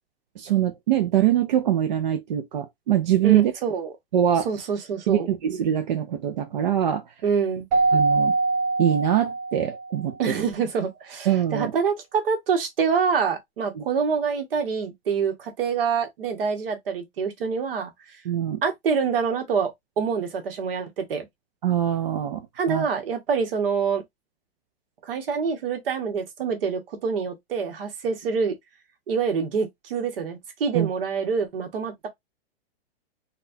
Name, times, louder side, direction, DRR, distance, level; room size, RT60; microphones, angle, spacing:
voice 1, 0.4-3.5 4.1-4.5 5.1-7.1 7.9-8.3 8.8-10.5 11.3-11.7 13.7-13.8 18.3-18.6 21.6-22.9 30.7-30.9, right 10 dB, 45° right, 0.5 m, -23 dB
voice 2, 3.2-3.9 4.4-5.3 7.2-7.7 10.2-17.9 18.6-21.2 22.6-24.0 25.0-28.5 29.1-32.1, right 6 dB, 60° right, 1.2 m, -26 dB
Keyboard (musical), 7.7-10.0, right 3 dB, 20° right, 0.8 m, -23 dB
4.0 x 2.3 x 2.6 m
hypercardioid pair, 170°, 32 cm